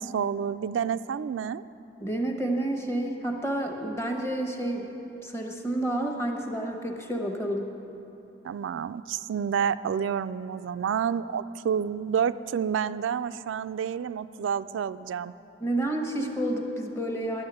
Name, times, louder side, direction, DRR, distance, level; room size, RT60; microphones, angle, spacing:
voice 1, 0.0-1.6 8.4-15.3, right 7 dB, 85° right, 12 dB, 0.3 m, -29 dB
voice 2, 2.0-4.9 5.2-7.7 15.6-17.4, right 1 dB, 15° left, 2 dB, 1.1 m, -29 dB
10.5 x 7.6 x 9.8 m, 2.9 s
head